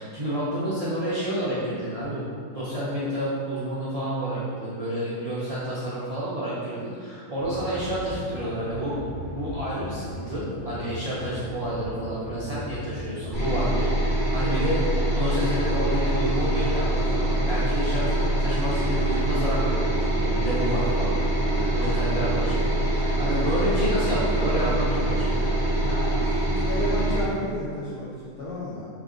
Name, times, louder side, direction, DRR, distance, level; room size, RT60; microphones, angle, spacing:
voice 1, 0.0-2.2 2.5-9.0 9.3-21.2 21.5-25.5, equal, 75° right, -10 dB, 0.3 m, -29 dB
sound 1, 7.4-14.0, left 1 dB, 35° right, 1.0 m, -37 dB
sound 2, 13.3-27.2, right 1 dB, 15° right, 1.4 m, -24 dB
voice 2, 25.8-28.9, left 1 dB, 70° left, -8 dB, 0.5 m, -33 dB
3.7 x 3.3 x 3.7 m, 2.1 s
omnidirectional pair, 1.7 m